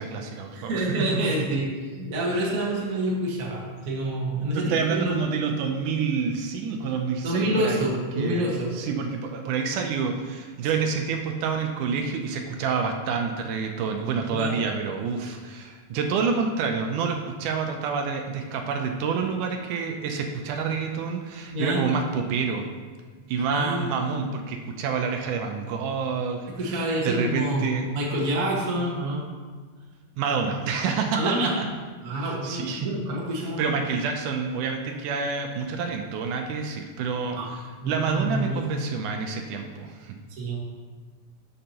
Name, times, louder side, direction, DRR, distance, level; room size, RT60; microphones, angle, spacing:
voice 1, 0.0-0.9 1.2-1.3 4.5-7.8 8.2-8.5 8.8-22.7 23.3-27.9 30.2-31.7 32.2-32.9 33.6-37.4 37.9-40.2, right 5 dB, 80° right, 4 dB, 2.1 m, -28 dB
voice 2, 0.5-1.7 2.0-5.2 7.2-8.7 14.3-14.6 21.5-21.9 23.4-24.3 26.5-27.7 27.9-29.2 31.1-31.6 32.0-33.8 37.3-38.7 40.3-40.6, right 1 dB, 40° right, -3 dB, 1.3 m, -27 dB
12.0 x 6.5 x 2.9 m, 1.5 s
omnidirectional pair, 3.7 m